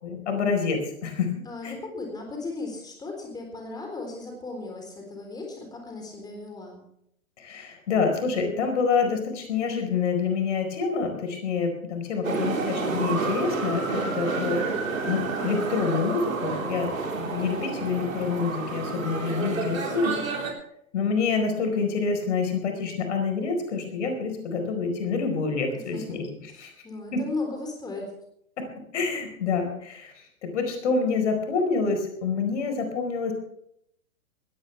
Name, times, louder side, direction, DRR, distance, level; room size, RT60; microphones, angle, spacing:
voice 1, 0.0-1.3 1.6-1.8 7.4-14.6 15.1-16.9 17.2-20.2 20.9-26.3 26.6-26.7 27.1-27.2 28.6-28.7 28.9-33.3, left 5 dB, 55° left, 5 dB, 4.7 m, -27 dB
voice 2, 1.5-6.8 20.0-20.3 25.9-26.2 26.5-28.1, left 3 dB, 10° left, 2 dB, 3.8 m, -36 dB
sound 1, 12.2-20.5, right 4 dB, 65° right, 4.2 m, -30 dB
20.0 x 15.5 x 3.4 m, 0.72 s
figure-of-eight pair, 115°, 43 cm